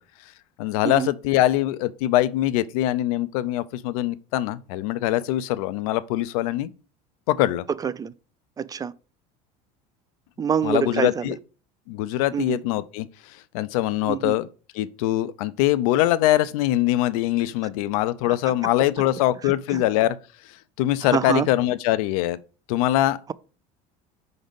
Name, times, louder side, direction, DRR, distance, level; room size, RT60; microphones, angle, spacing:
voice 1, 0.6-6.7 7.3-7.7 10.6-11.4 11.9-14.5 14.7-20.2 20.5-22.4 22.7-23.2, left 14 dB, 80° left, 0.5 m, -23 dB
voice 2, 8.6-8.9 10.4-11.3 12.3-12.6 14.0-14.3 18.3-18.4 19.7-19.8 21.0-21.5, right 7 dB, 20° right, 0.3 m, -25 dB
5.0 x 4.0 x 5.2 m
supercardioid pair, 100°, 18 cm